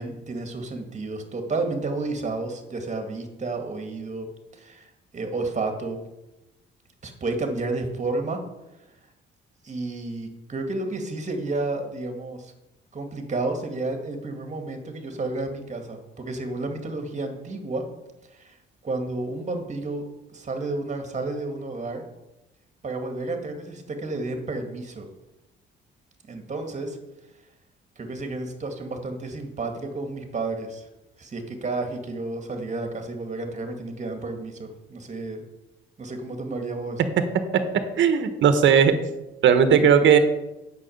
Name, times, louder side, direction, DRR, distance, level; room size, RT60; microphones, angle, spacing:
voice 1, 0.0-6.0 7.0-8.4 9.6-12.5 12.9-17.9 18.3-18.5 18.8-20.1 20.3-22.0 22.8-25.1 26.3-27.0 28.0-30.9 31.2-35.5 36.0-37.0, right 2 dB, 35° right, 5 dB, 2.1 m, -31 dB
voice 2, 38.0-38.9 39.4-40.2, right 7 dB, 70° right, 9 dB, 1.3 m, -17 dB
8.3 x 6.4 x 7.9 m, 0.98 s
cardioid pair, 90°, 20 cm